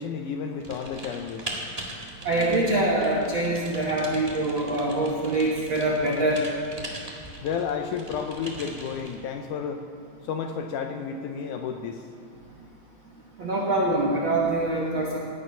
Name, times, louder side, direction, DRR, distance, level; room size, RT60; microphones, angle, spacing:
voice 1, 0.0-1.5 7.4-9.8 10.2-12.1, left 6 dB, 80° left, 5 dB, 1.9 m, -31 dB
Typing, 0.6-9.2, right 1 dB, 30° right, 0.6 m, -40 dB
voice 2, 2.2-6.4 13.4-15.2, right 2 dB, 60° right, -3 dB, 1.3 m, -24 dB
17.0 x 9.8 x 5.6 m, 2.3 s
omnidirectional pair, 4.1 m